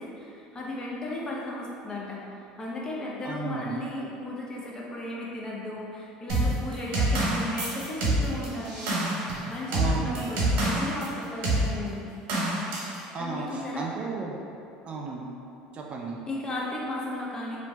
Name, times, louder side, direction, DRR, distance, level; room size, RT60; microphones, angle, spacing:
voice 1, 0.0-12.1 13.2-13.9 16.3-17.6, left 1 dB, 25° left, -4 dB, 0.5 m, -35 dB
voice 2, 3.2-3.8 9.7-10.3 13.1-14.4 14.8-15.3 15.7-16.2, right 4 dB, 40° right, -1 dB, 0.3 m, -34 dB
sound 1, 6.3-11.1 11.4-11.7 12.3-13.0, right 1 dB, 70° right, 0.9 m, -26 dB
2.6 x 2.0 x 3.3 m, 2.6 s
supercardioid pair, 100°, 3 cm